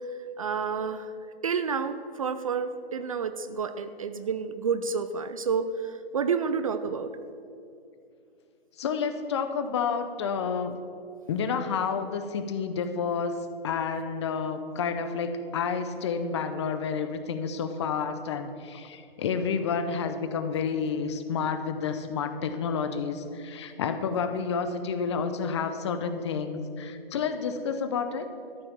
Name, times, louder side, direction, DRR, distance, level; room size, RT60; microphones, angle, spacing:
voice 1, 0.4-1.1 1.4-7.1, right 5 dB, 35° right, 11 dB, 0.4 m, -29 dB
voice 2, 8.8-10.8 11.3-13.4 13.6-28.3, left 6 dB, 30° left, 9 dB, 0.6 m, -30 dB
13.0 x 5.7 x 7.0 m, 2.6 s
hypercardioid pair, 140°, 30 cm